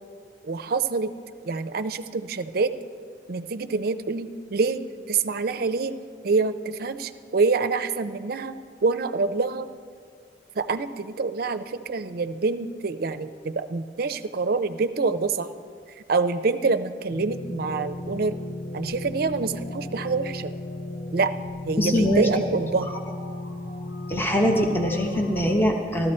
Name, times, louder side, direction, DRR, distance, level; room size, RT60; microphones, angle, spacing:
voice 1, 0.4-1.1 1.4-2.7 3.3-6.0 6.2-9.7 10.6-15.5 16.1-18.4 18.7-20.5 21.1-21.3 21.7-22.9, right 4 dB, 60° right, 11 dB, 0.5 m, -26 dB
sound 1, 17.1-25.6, left 1 dB, 75° left, 1.2 m, -35 dB
voice 2, 21.8-22.4 24.1-26.1, equal, 15° left, 1 dB, 0.9 m, -22 dB
14.0 x 13.0 x 4.3 m, 2.1 s
head